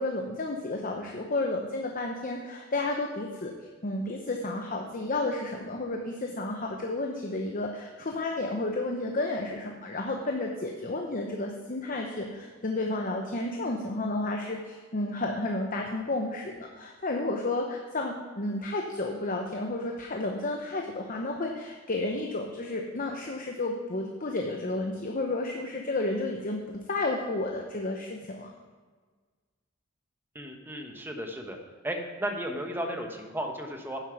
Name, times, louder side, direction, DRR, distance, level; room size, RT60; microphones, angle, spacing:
voice 1, 0.0-3.5 3.8-28.5, left 2 dB, 45° left, 2 dB, 0.9 m, -32 dB
voice 2, 30.3-31.6 31.8-34.0, equal, 10° right, 3 dB, 1.2 m, -34 dB
10.0 x 7.5 x 5.8 m, 1.5 s
head